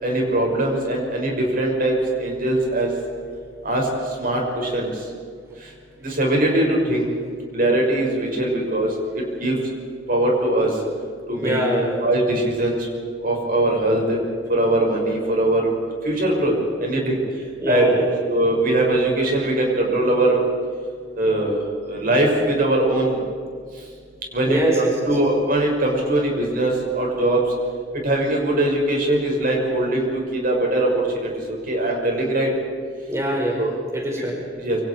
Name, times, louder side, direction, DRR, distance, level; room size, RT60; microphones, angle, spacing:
voice 1, 0.0-2.9 3.6-3.9 4.2-4.9 6.0-7.1 7.5-9.5 10.1-10.7 11.3-11.6 12.0-12.8 13.2-14.2 14.5-15.7 16.0-16.5 16.8-17.2 17.7-17.9 18.3-20.4 21.2-21.6 21.9-23.2 24.3-24.6 25.1-27.4 28.0-31.3 31.7-32.5 33.6-33.7 34.6-34.8, right 1 dB, 50° right, -1 dB, 6.5 m, -21 dB
voice 2, 11.4-12.0 17.6-18.1 24.5-25.2 33.1-34.4, equal, 15° right, -2 dB, 4.9 m, -24 dB
28.0 x 25.5 x 4.9 m, 2.1 s
head